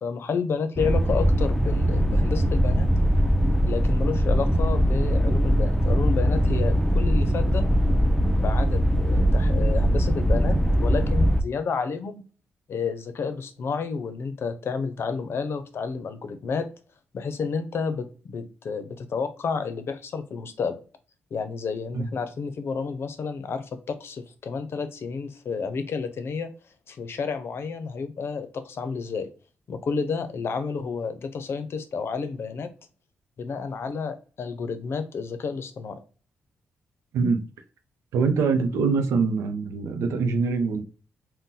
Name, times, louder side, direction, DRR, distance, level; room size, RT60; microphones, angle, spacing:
voice 1, 0.0-2.9 3.6-7.7 8.3-12.3 12.7-16.7 17.1-20.8 21.3-26.5 26.9-29.3 29.7-32.7 33.4-36.0, left 5 dB, 60° left, 0.6 m, -30 dB
sound 1, 0.8-11.4, equal, 5° left, 0.5 m, -21 dB
voice 2, 38.1-40.8, right 4 dB, 90° right, 0.6 m, -23 dB
2.7 x 2.1 x 3.7 m
cardioid pair, 70°, 5 cm